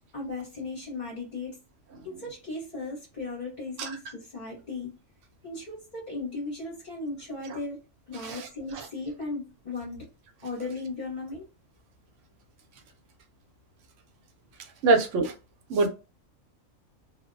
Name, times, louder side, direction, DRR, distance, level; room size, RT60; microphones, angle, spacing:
voice 1, 0.1-1.6 2.0-4.9 5.4-7.8 8.1-10.1 10.4-11.4, left 3 dB, 40° left, 0.9 m, -36 dB
voice 2, 14.8-15.3 15.7-15.9, right 3 dB, 75° right, 0.9 m, -24 dB
2.5 x 2.0 x 2.4 m
omnidirectional pair, 1.3 m